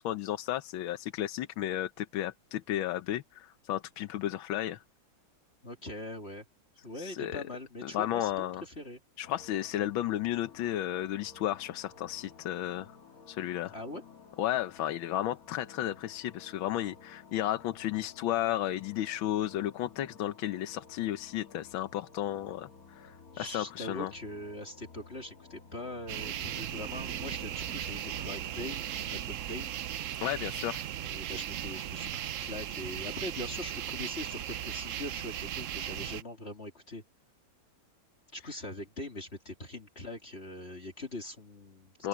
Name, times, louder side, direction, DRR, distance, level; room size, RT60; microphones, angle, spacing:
voice 1, 0.0-4.8 7.0-7.4 7.8-8.6 9.2-12.9 13.3-13.7 14.4-24.1 30.2-30.8 42.0-42.1, left 13 dB, 80° left, 1.6 m, -33 dB
voice 2, 5.6-6.5 6.8-9.0 13.7-14.0 23.3-29.7 31.0-37.0 38.3-42.1, left 1 dB, 30° left, 2.9 m, -42 dB
sound 1, 9.2-29.1, left 5 dB, 50° left, 2.0 m, -54 dB
sound 2, 26.1-36.2, right 11 dB, 80° right, 0.7 m, -37 dB
open air
omnidirectional pair, 2.2 m